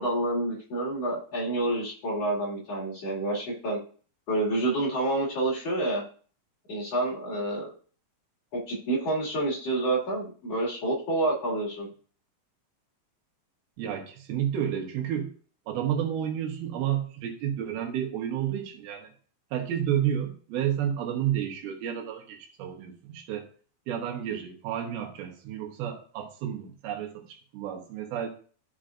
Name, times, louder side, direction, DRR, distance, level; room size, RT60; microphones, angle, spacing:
voice 1, 0.0-3.8 4.3-6.0 6.7-7.7 8.5-11.9, right 2 dB, 45° left, -5 dB, 3.0 m, -28 dB
voice 2, 13.8-15.3 15.7-19.1 19.5-23.5 23.9-28.3, right 10 dB, 85° right, 2 dB, 3.1 m, -31 dB
12.5 x 5.6 x 2.5 m, 0.43 s
omnidirectional pair, 4.3 m